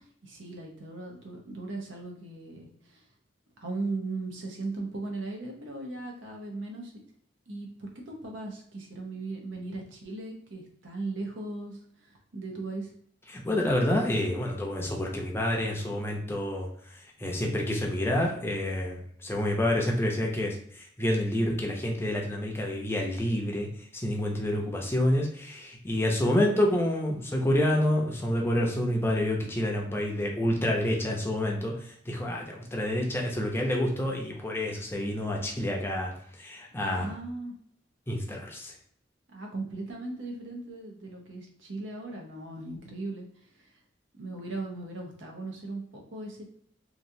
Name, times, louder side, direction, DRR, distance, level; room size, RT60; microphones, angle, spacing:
voice 1, 0.2-3.0 3.6-6.9 7.5-12.9 36.8-37.5 39.3-43.3 43.5-43.7 44.1-46.5, right 2 dB, 85° right, 0 dB, 0.8 m, -38 dB
voice 2, 13.3-36.1 36.4-37.1 38.1-38.7, left 1 dB, 15° left, -1 dB, 0.5 m, -28 dB
3.0 x 2.3 x 2.6 m, 0.65 s
head